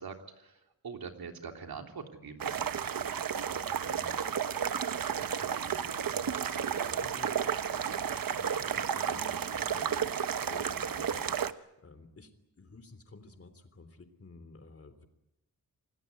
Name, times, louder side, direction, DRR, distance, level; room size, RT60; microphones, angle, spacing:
voice 1, 0.0-3.1, right 5 dB, 85° right, 4 dB, 3.4 m, -44 dB
sound 1, 2.4-11.5, right 8 dB, 70° right, 1.1 m, -32 dB
voice 2, 3.5-15.1, left 3 dB, 40° left, 10 dB, 3.5 m, -53 dB
27.5 x 18.5 x 9.6 m, 0.93 s
wide cardioid pair, 105°, 35 cm